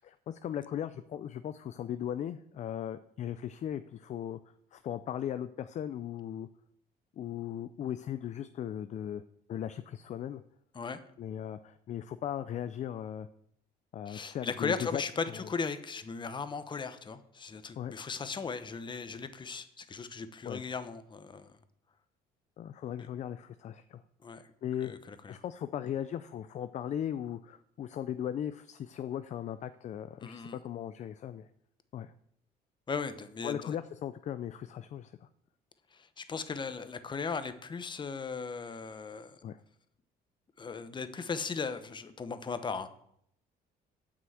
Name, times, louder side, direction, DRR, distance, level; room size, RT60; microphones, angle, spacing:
voice 1, 0.0-4.4 4.7-6.5 7.2-9.2 9.5-10.4 11.2-13.3 13.9-15.0 15.3-15.5 17.8-17.9 20.4-20.6 22.6-24.0 24.3-24.9 25.3-31.5 31.9-32.1 33.4-35.3 39.4-39.6, left 10 dB, 45° left, 12 dB, 0.4 m, -38 dB
voice 2, 14.1-21.5 24.2-24.5 24.8-25.3 30.2-30.6 32.9-33.7 35.9-39.4 40.6-42.9, left 5 dB, 25° left, 11 dB, 0.9 m, -37 dB
7.7 x 6.1 x 7.8 m, 0.72 s
cardioid pair, 110°, 17 cm